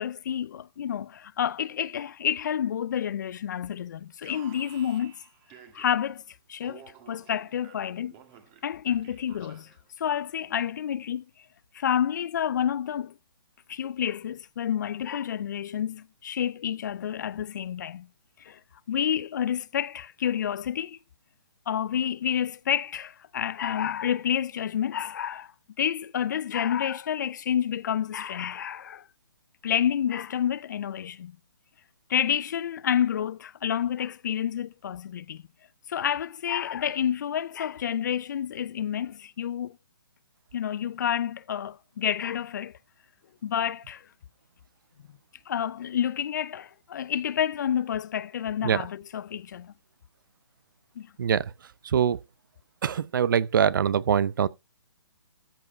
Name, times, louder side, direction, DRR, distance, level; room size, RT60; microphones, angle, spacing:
voice 1, 0.0-5.2 5.7-6.2 6.5-8.1 8.6-9.7 10.0-11.2 11.7-13.1 13.7-18.1 18.4-18.6 18.9-21.0 21.7-25.5 25.8-29.0 29.6-31.4 32.1-35.4 35.9-39.8 40.5-42.7 43.4-44.0 45.5-49.7 51.0-51.1, left 9 dB, 50° left, 0.4 m, -29 dB
Alarm, 4.2-6.2 6.6-9.9, right 8 dB, 25° right, 1.6 m, -52 dB
voice 2, 51.2-51.5 51.8-52.2 52.8-54.5, right 8 dB, 55° right, 0.6 m, -23 dB
13.5 x 4.8 x 4.3 m
hypercardioid pair, 155°, 13 cm